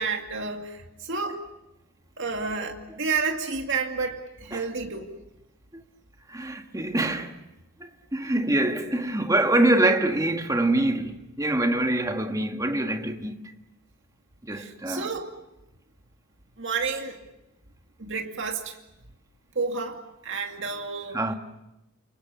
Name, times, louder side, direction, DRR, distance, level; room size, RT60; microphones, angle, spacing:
voice 1, 0.0-1.4 2.2-5.1 14.5-15.3 16.6-17.2 18.0-18.8 19.6-21.2, right 4 dB, 60° right, 2.3 m, -30 dB
voice 2, 6.3-7.3 7.8-13.5 14.4-15.1 21.1-21.3, right 1 dB, 15° right, 1.6 m, -25 dB
29.0 x 25.0 x 6.9 m
head